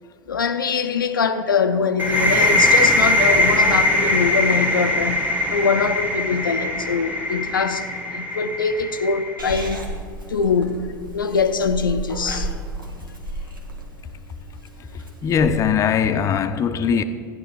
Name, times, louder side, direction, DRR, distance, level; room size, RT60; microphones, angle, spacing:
voice 1, 0.3-9.8 10.3-10.9 11.1-12.5, left 5 dB, 80° left, 0.6 m, -23 dB
sound 1, 2.0-9.5, left 1 dB, 15° right, 1.6 m, -21 dB
Purr / Meow, 9.4-15.5, right 1 dB, 90° right, 1.4 m, -33 dB
voice 2, 15.2-17.0, left 7 dB, 30° left, 0.7 m, -20 dB
13.0 x 10.0 x 4.5 m
figure-of-eight pair, 85°, 11 cm